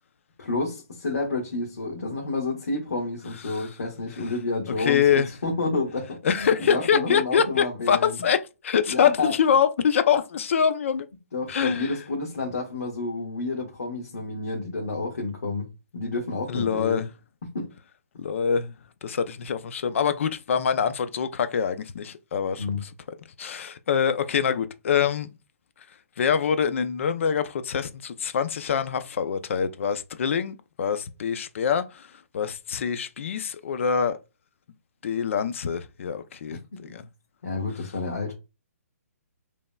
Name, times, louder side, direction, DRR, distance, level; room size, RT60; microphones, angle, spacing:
voice 1, 0.4-8.2 8.9-9.3 11.3-15.7 15.9-17.0 17.5-17.7 22.6-22.8 36.7-36.9 37.4-38.3, left 3 dB, 80° left, 1.7 m, -30 dB
voice 2, 4.8-5.3 6.2-11.1 11.5-11.9 16.5-17.1 18.2-18.7 19.0-22.9 23.4-25.3 26.2-34.2 35.0-37.0, left 7 dB, 55° left, 0.6 m, -25 dB
5.2 x 3.4 x 2.3 m
hypercardioid pair, 155°, 8 cm